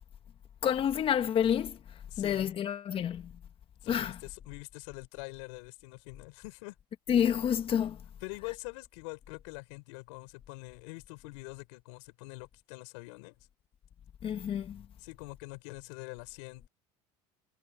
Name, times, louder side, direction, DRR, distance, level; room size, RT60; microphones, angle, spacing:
voice 1, 0.6-1.8 2.2-3.3 3.9-4.2 7.1-8.0 14.2-14.8, left 9 dB, 40° left, 1.6 m, -29 dB
voice 2, 2.1-2.5 3.8-6.7 8.2-13.4 15.0-16.7, left 27 dB, 80° left, 5.4 m, -44 dB
supercardioid pair, 105°, 14 cm